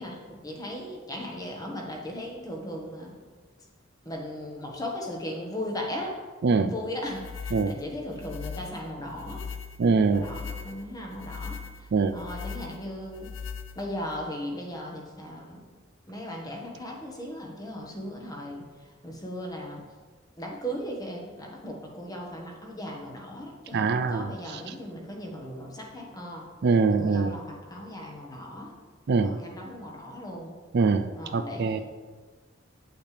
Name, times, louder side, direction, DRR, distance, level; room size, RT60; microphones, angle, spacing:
voice 1, 0.0-3.2 4.0-6.2 6.6-9.4 10.1-11.6 12.1-13.3 13.7-15.7 16.1-18.7 19.0-19.9 20.4-26.5 27.0-28.7 29.2-30.6 31.2-31.8, equal, 20° left, 0 dB, 1.3 m, -37 dB
voice 2, 6.4-6.7 7.5-7.7 9.8-10.3 11.9-12.2 23.7-24.7 26.6-27.4 29.1-29.4 30.7-31.8, right 4 dB, 55° right, 9 dB, 0.4 m, -24 dB
sound 1, 7.1-14.2, left 6 dB, 80° left, 0.6 m, -40 dB
8.7 x 8.1 x 3.3 m, 1.4 s
head